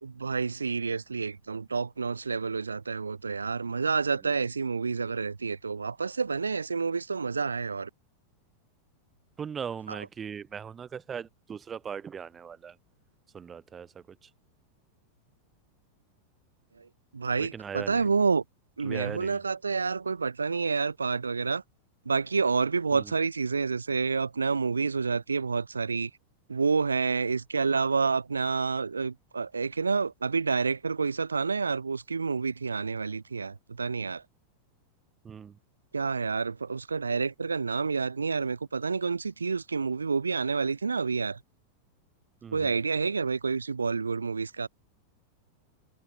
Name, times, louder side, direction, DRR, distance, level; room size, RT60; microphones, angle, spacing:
voice 1, 0.0-7.9 9.9-10.0 16.8-16.9 17.1-18.4 18.8-21.6 22.1-26.1 26.5-34.2 35.9-41.4 42.5-44.7, right 4 dB, 75° right, 5.2 m, -29 dB
voice 2, 9.4-12.7 13.3-14.0 17.4-18.1 18.8-19.4 22.9-23.0 35.2-35.5 42.4-42.7, right 7 dB, 20° right, 6.4 m, -39 dB
figure-of-eight pair, 90°, 0 cm